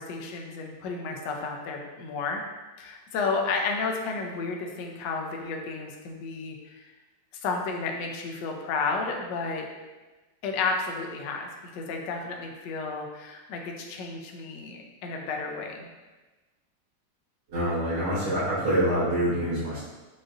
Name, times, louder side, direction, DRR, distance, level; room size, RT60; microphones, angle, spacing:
voice 1, 0.0-2.4 2.8-6.9 7.4-9.7 10.4-15.9, left 4 dB, 75° left, 1 dB, 1.2 m, -32 dB
voice 2, 17.5-19.8, right 1 dB, 90° right, -10 dB, 2.0 m, -26 dB
7.5 x 2.6 x 2.5 m, 1.2 s
omnidirectional pair, 2.1 m